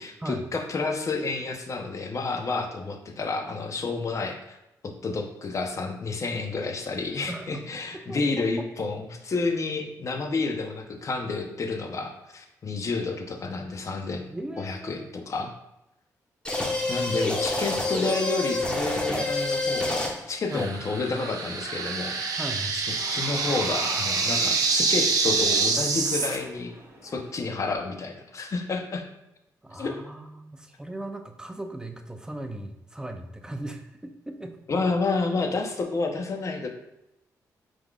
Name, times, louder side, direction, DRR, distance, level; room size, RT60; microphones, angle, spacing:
voice 1, 0.0-4.6 5.0-14.2 14.6-15.5 16.9-22.4 22.7-26.7 27.0-29.1 29.7-29.9 34.7-36.7, left 3 dB, 50° left, 4 dB, 0.8 m, -30 dB
voice 2, 7.3-7.6 7.9-8.5 14.3-15.2 20.5-20.7 22.4-22.8 29.6-34.6, right 1 dB, 10° right, 5 dB, 0.6 m, -38 dB
sound 1, 16.4-20.3, left 2 dB, 15° left, 1.1 m, -27 dB
sound 2, 20.5-26.4, right 4 dB, 60° right, 0.7 m, -26 dB
Human voice / Cheering, 21.2-27.8, right 1 dB, 35° right, 1.2 m, -43 dB
4.8 x 3.8 x 2.4 m, 0.88 s
cardioid pair, 70°, 7 cm